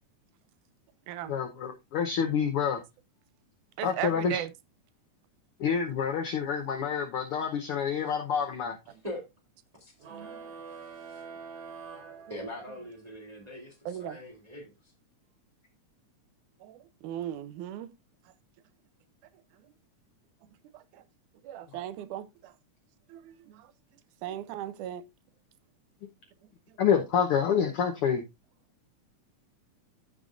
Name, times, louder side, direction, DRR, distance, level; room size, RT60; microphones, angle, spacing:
voice 1, 1.3-2.8 3.8-4.4 5.6-8.8 26.8-28.2, left 7 dB, 70° left, 1.3 m, -27 dB
voice 2, 3.8-4.5 10.1-10.5 13.9-14.2 16.6-17.9 20.7-21.0 21.4-22.5 23.1-23.7 24.2-25.1 26.7-26.8, right 11 dB, 90° right, 2.2 m, -38 dB
voice 3, 8.9-9.3 9.8-9.9 10.8-11.2 12.3-14.7, left 1 dB, 15° right, 2.0 m, -42 dB
sound 1, 10.0-13.0, right 5 dB, 55° right, 2.5 m, -45 dB
15.0 x 5.3 x 2.5 m
omnidirectional pair, 3.6 m